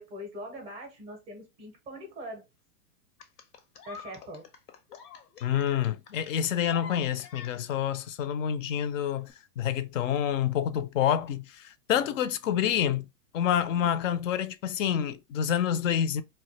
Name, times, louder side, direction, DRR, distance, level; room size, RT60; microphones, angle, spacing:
voice 1, 0.0-2.4 3.9-4.5 13.7-14.0, equal, 15° right, 0.5 m, -42 dB
sound 1, 3.2-8.0 9.2-9.3, left 6 dB, 90° left, 0.8 m, -47 dB
voice 2, 5.4-9.3 9.6-13.1 13.3-16.2, left 9 dB, 60° left, 0.5 m, -28 dB
2.3 x 2.2 x 3.9 m
hypercardioid pair, 145°, 45 cm